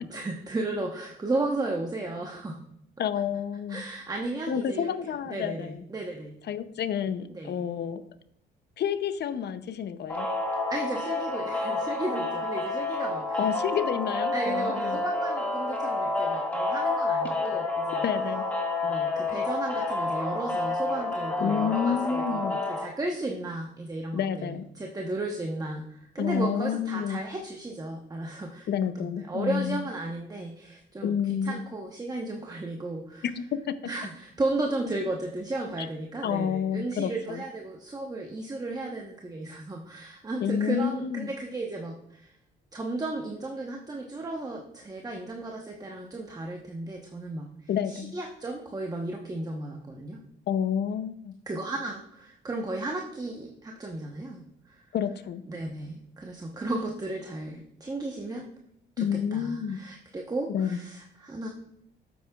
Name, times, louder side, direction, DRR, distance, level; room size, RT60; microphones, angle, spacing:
voice 1, 0.0-2.6 3.7-6.4 7.3-7.6 10.7-13.5 14.3-18.0 18.8-28.7 29.0-33.3 33.8-42.3 42.7-50.2 51.5-54.8 55.5-58.5 59.0-61.5, right 2 dB, 20° right, 1 dB, 1.0 m, -34 dB
voice 2, 3.0-3.8 4.5-5.8 6.5-8.0 8.8-10.3 13.4-15.0 18.0-18.4 21.4-22.6 24.1-24.6 26.2-27.2 28.7-29.8 31.0-31.6 33.2-33.8 36.2-37.4 40.4-41.3 47.7-48.1 50.5-51.3 54.9-55.4 59.0-59.8 60.5-60.8, left 8 dB, 60° left, 13 dB, 0.6 m, -29 dB
sound 1, 10.1-22.9, left 2 dB, 5° left, 1.8 m, -29 dB
8.6 x 8.3 x 2.3 m, 0.74 s
cardioid pair, 90°, 20 cm